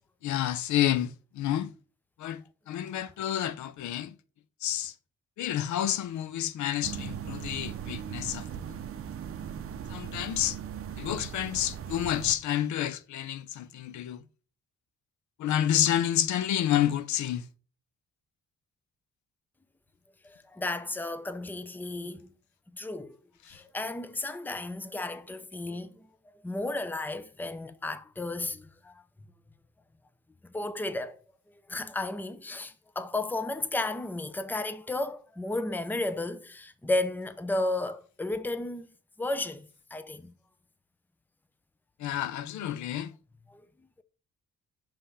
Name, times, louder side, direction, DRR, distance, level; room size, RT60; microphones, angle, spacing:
voice 1, 0.2-1.7 2.2-2.4 2.7-4.1 4.6-4.9 5.4-8.4 9.9-10.6 11.0-14.2 15.4-17.4 42.0-43.1, left 11 dB, 70° left, 0.6 m, -29 dB
sound 1, 6.8-12.3, right 8 dB, 45° right, 0.6 m, -38 dB
voice 2, 20.2-22.3 22.7-23.2 23.5-26.1 26.4-29.0 30.4-31.2 31.7-38.9 39.2-40.3 43.5-43.6, left 2 dB, 5° left, 0.5 m, -33 dB
5.5 x 3.5 x 5.4 m
cardioid pair, 90°, 30 cm